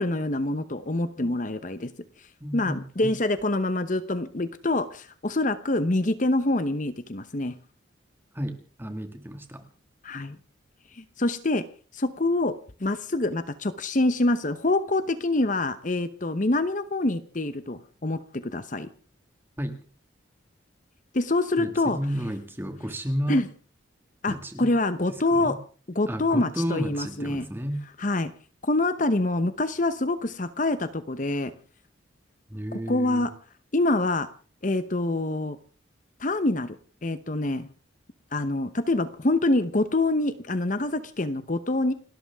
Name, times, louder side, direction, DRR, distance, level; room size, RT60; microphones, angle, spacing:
voice 1, 0.0-1.9 2.5-7.6 10.0-10.4 10.9-11.6 11.9-12.5 12.8-18.9 21.1-22.0 23.3-23.4 24.2-25.6 25.9-27.5 28.0-28.3 28.6-31.5 32.9-33.3 33.7-34.3 34.6-35.6 36.2-36.8 37.0-37.7 38.3-41.9, left 2 dB, 40° left, 12 dB, 0.9 m, -26 dB
voice 2, 2.4-3.1 8.3-9.7 19.6-19.8 21.6-23.5 24.3-24.7 25.1-25.6 26.1-27.8 32.5-33.3, equal, 10° right, 6 dB, 2.0 m, -32 dB
29.5 x 13.0 x 3.6 m, 0.42 s
head